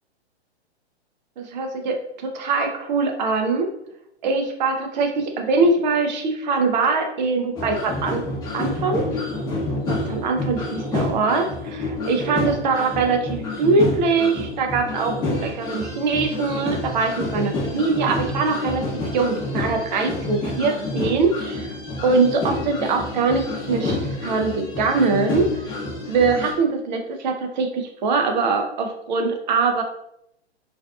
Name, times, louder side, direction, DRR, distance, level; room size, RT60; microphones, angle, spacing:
voice 1, 1.4-3.7 4.2-8.2 8.5-9.1 9.9-18.8 19.1-21.7 22.0-25.5 26.1-29.8, right 4 dB, 45° right, 4 dB, 0.5 m, -22 dB
sound 1, 7.6-26.5, left 2 dB, 10° left, 0.8 m, -28 dB
2.5 x 2.2 x 2.3 m, 0.78 s
figure-of-eight pair, 120°, 33 cm